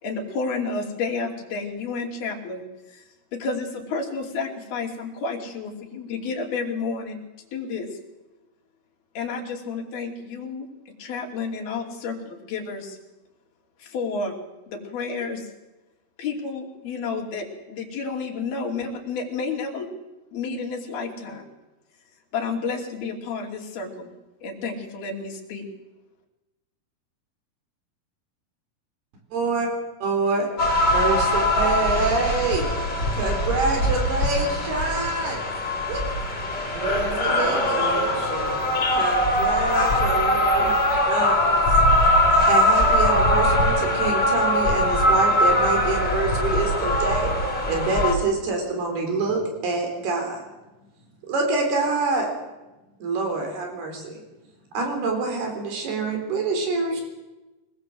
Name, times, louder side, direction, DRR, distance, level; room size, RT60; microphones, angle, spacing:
voice 1, 0.0-2.6 2.9-3.0 3.3-7.2 7.5-8.0 9.1-10.7 11.0-13.0 13.8-14.3 14.7-15.5 16.2-19.9 20.3-21.5 22.3-24.1 24.4-25.7, left 4 dB, 75° left, 4.8 m, -30 dB
voice 2, 29.3-29.7 30.0-30.5 30.9-32.7 33.1-35.4 35.9-36.0 37.1-37.9 38.9-41.6 42.4-47.3 47.7-50.4 51.2-52.3 53.0-54.2 54.7-57.0, right 3 dB, 80° right, 5.8 m, -26 dB
sound 1, 30.6-48.1, left 1 dB, 25° left, 4.5 m, -21 dB
voice 3, 36.7-38.6 56.9-57.0, right 2 dB, 65° right, 6.2 m, -32 dB
23.5 x 19.5 x 7.8 m
omnidirectional pair, 4.5 m